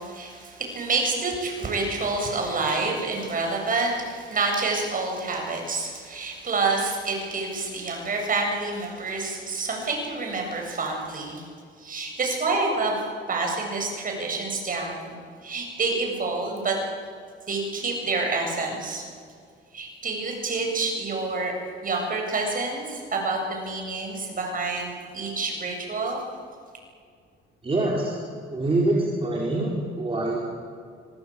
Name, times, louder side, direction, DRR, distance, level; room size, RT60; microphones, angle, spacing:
voice 1, 0.0-11.5 11.8-13.0 13.3-16.7 17.5-19.0 19.7-21.5 21.8-26.2, right 3 dB, 45° right, 1 dB, 7.8 m, -28 dB
voice 2, 27.6-28.2 28.5-30.4, right 2 dB, 30° right, -3 dB, 5.1 m, -25 dB
25.5 x 22.5 x 8.7 m, 2.1 s
cardioid pair, 90°, 20 cm